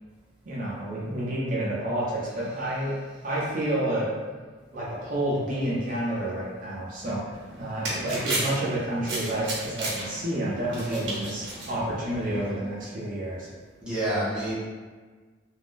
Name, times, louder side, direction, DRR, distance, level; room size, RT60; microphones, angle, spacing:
voice 1, 0.4-2.9 3.2-4.1 4.7-13.5, right 1 dB, 45° right, -7 dB, 0.6 m, -29 dB
sound 1, 7.3-12.5, right 2 dB, 65° right, 1.0 m, -34 dB
voice 2, 10.7-11.2 13.8-14.5, right 1 dB, 5° right, -10 dB, 0.7 m, -29 dB
2.5 x 2.2 x 3.5 m, 1.4 s
head